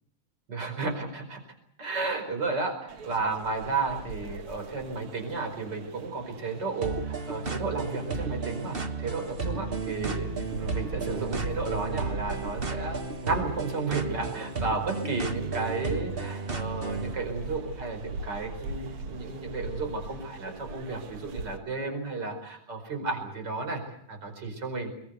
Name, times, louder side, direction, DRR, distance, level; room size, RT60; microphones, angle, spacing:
voice 1, 0.5-1.4 1.8-24.9, right 3 dB, 30° right, 4 dB, 5.4 m, -33 dB
sound 1, 2.9-21.6, right 3 dB, 50° right, 2.0 m, -42 dB
sound 2, 6.8-17.1, right 4 dB, 65° right, 0.5 m, -33 dB
24.0 x 22.0 x 8.2 m, 0.69 s
omnidirectional pair, 3.6 m